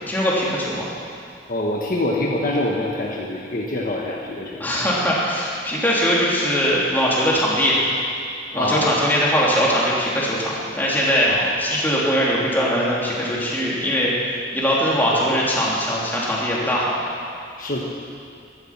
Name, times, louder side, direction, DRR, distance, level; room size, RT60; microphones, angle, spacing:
voice 1, 0.1-0.9 4.6-7.8 8.5-11.3 11.6-14.1 14.5-17.0, equal, 10° left, -6 dB, 3.1 m, -21 dB
voice 2, 1.5-4.9 8.5-8.9 11.3-11.5 17.6-17.8, left 1 dB, 50° left, -3 dB, 1.4 m, -25 dB
15.5 x 13.0 x 6.0 m, 2.4 s
head